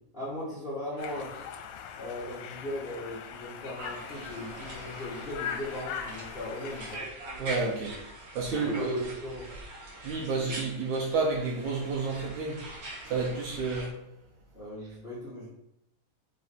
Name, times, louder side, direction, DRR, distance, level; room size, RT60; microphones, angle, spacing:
voice 1, 0.1-1.3 2.0-7.0 8.6-9.5 14.5-15.5, left 1 dB, 25° left, -8 dB, 1.4 m, -38 dB
Conversation, 1.0-7.0, left 8 dB, 85° left, 2.4 m, -41 dB
sound 1, 3.8-13.9, right 2 dB, 45° right, 1.7 m, -43 dB
voice 2, 7.4-8.0 8.4-9.0 10.0-12.6 13.1-13.9, right 4 dB, 70° right, -2 dB, 2.0 m, -30 dB
5.4 x 5.3 x 4.6 m, 0.80 s
omnidirectional pair, 4.1 m